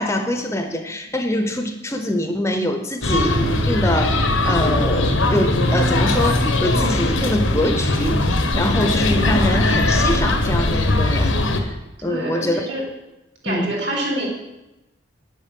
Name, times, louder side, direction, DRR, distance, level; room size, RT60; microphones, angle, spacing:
voice 1, 0.0-11.8 12.0-12.7 13.5-13.7, left 1 dB, 15° left, 6 dB, 0.9 m, -24 dB
sound 1, 3.0-11.6, left 2 dB, 90° left, 1.6 m, -19 dB
voice 2, 12.0-12.8 13.4-14.3, right 1 dB, 65° right, -1 dB, 3.7 m, -25 dB
9.7 x 8.1 x 7.6 m, 0.98 s
head